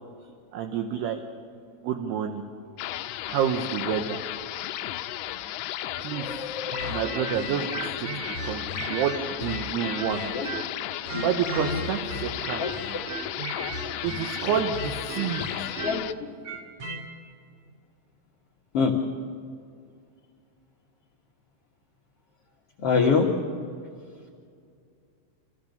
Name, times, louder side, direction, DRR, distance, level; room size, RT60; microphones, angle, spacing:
voice 1, 0.5-1.2 1.8-2.4 3.3-4.2 6.0-6.4 6.9-10.5 11.2-12.7 14.0-15.7, right 8 dB, 70° right, 4 dB, 2.8 m, -29 dB
sound 1, 2.8-16.1, left 13 dB, 85° left, 2.2 m, -34 dB
voice 2, 6.1-7.0 10.3-10.5 11.1-11.2 12.6-13.3 13.8-13.9 15.8-16.0 18.7-19.0 22.8-23.3, left 5 dB, 65° left, -2 dB, 1.4 m, -26 dB
sound 2, 6.7-10.8 11.1-17.0, right 1 dB, 40° right, 2.7 m, -35 dB
28.0 x 15.0 x 6.7 m, 2.3 s
omnidirectional pair, 5.4 m